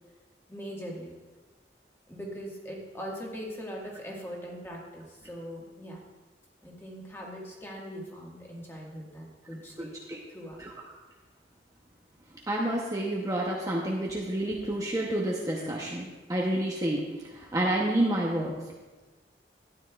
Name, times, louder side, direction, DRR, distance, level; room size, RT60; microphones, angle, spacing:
voice 1, 0.5-1.1 2.1-6.0 6.6-9.9 10.3-10.6, equal, 15° left, -3 dB, 1.6 m, -41 dB
voice 2, 9.8-10.2 10.6-10.7 12.5-18.6, right 1 dB, 20° right, -2 dB, 0.7 m, -29 dB
12.5 x 9.7 x 2.3 m, 1.3 s
head